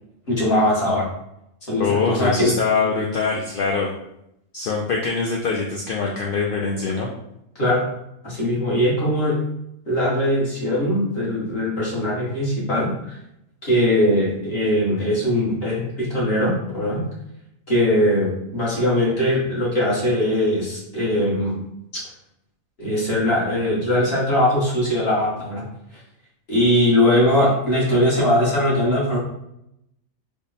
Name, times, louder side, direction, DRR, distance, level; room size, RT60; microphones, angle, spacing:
voice 1, 0.3-1.0 1.7-2.5 7.5-7.9 8.2-9.4 9.9-13.2 13.6-17.0 17.7-21.6 22.8-25.6 26.5-29.2, left 1 dB, 45° left, -6 dB, 1.5 m, -20 dB
voice 2, 1.8-3.9 4.5-7.1, left 4 dB, 70° left, -2 dB, 0.5 m, -23 dB
3.4 x 2.2 x 3.9 m, 0.80 s
omnidirectional pair, 1.4 m